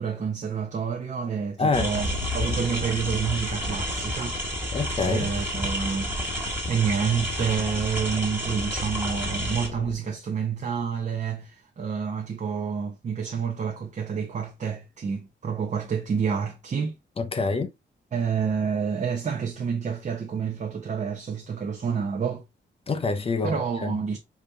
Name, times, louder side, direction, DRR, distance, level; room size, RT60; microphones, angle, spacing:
voice 1, 0.0-2.1 2.3-4.7 5.0-6.2 6.7-17.0 18.1-22.4 23.4-24.2, right 6 dB, 40° right, 0.7 m, -28 dB
voice 2, 1.6-1.9 4.7-5.3 17.2-17.7 22.9-23.9, left 4 dB, 30° left, 0.5 m, -26 dB
sound 1, 1.7-9.7, equal, 10° right, 1.7 m, -31 dB
sound 2, 1.9-9.9, left 4 dB, 65° left, 0.8 m, -37 dB
5.0 x 2.8 x 3.2 m
wide cardioid pair, 170°, 20 cm